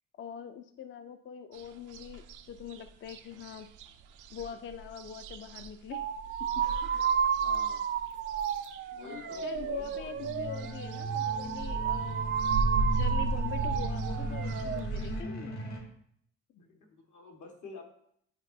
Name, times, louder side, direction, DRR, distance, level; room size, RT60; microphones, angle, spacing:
voice 1, 0.2-3.7 4.3-6.1 6.5-6.6 6.9-7.1 9.0-12.4 12.9-15.7, left 8 dB, 40° left, 9 dB, 0.4 m, -43 dB
sound 1, 1.5-15.2, right 3 dB, 90° right, 0.5 m, -37 dB
sound 2, 5.9-14.8, right 8 dB, 40° right, 0.5 m, -32 dB
voice 2, 7.4-7.8 8.9-10.6 16.6-17.8, left 4 dB, 75° left, 1 dB, 1.5 m, -49 dB
sound 3, 10.1-15.8, right 2 dB, 60° left, 1.6 m, -38 dB
10.5 x 4.6 x 2.7 m, 0.68 s
cardioid pair, 90°, 30 cm